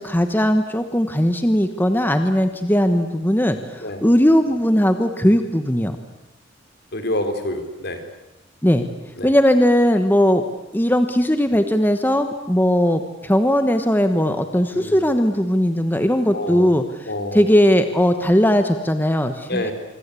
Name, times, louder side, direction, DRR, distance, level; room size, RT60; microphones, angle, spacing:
voice 1, 0.0-6.0 8.6-8.9 9.2-10.4 10.7-19.7, equal, 10° left, 8 dB, 1.2 m, -18 dB
voice 2, 6.9-8.0 9.2-9.3 14.7-15.0 16.3-16.7 17.1-17.4 19.5-19.7, left 1 dB, 55° left, 7 dB, 3.8 m, -27 dB
25.5 x 24.5 x 8.4 m, 0.97 s
head